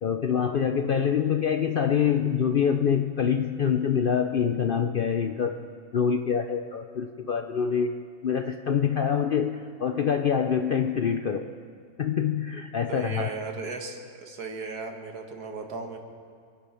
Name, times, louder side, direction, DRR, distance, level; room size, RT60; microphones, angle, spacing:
voice 1, 0.0-5.6 5.9-8.0 8.2-11.5 12.0-13.3, left 7 dB, 65° left, 6 dB, 0.5 m, -25 dB
voice 2, 12.9-16.0, right 4 dB, 80° right, 4 dB, 1.9 m, -36 dB
25.0 x 10.0 x 5.7 m, 2.2 s
omnidirectional pair, 1.6 m